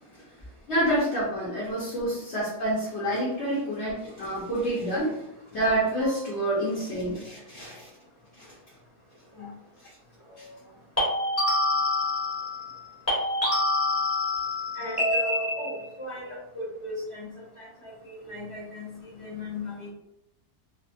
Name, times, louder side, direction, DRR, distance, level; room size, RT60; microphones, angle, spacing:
voice 1, 0.7-5.2 5.5-7.9, right 1 dB, 50° left, -8 dB, 1.1 m, -28 dB
sound 1, 6.0-6.3 11.0-12.8 13.1-16.0, left 1 dB, 10° left, 1.1 m, -27 dB
voice 2, 14.8-19.9, left 1 dB, 25° left, -7 dB, 0.7 m, -38 dB
2.6 x 2.6 x 2.6 m, 0.81 s
omnidirectional pair, 1.6 m